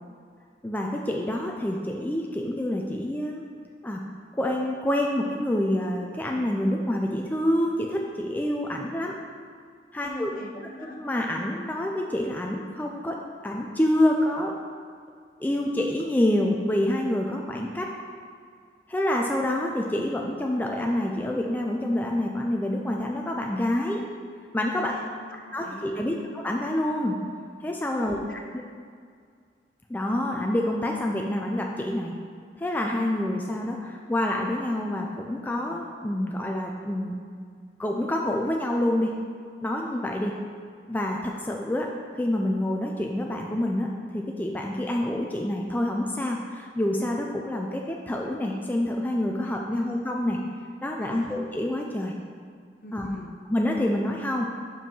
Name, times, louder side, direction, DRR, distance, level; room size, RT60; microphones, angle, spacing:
voice 1, 0.6-3.4 3.8-4.0 4.4-9.2 9.9-10.3 10.8-13.2 13.4-14.5 15.4-17.9 18.9-24.0 24.5-24.9 25.5-27.2 27.6-28.4 29.9-32.1 32.6-37.2 37.8-39.2 39.6-40.4 40.9-43.9 44.1-50.4 50.8-52.1 52.9-53.1 53.5-54.5, left 1 dB, 10° left, 0 dB, 0.4 m, -27 dB
voice 2, 10.0-11.0 24.8-25.9 27.9-28.6 49.4-49.9 51.0-51.4 52.8-53.3, left 1 dB, 50° left, 2 dB, 0.8 m, -42 dB
5.3 x 5.2 x 5.4 m, 2.1 s
head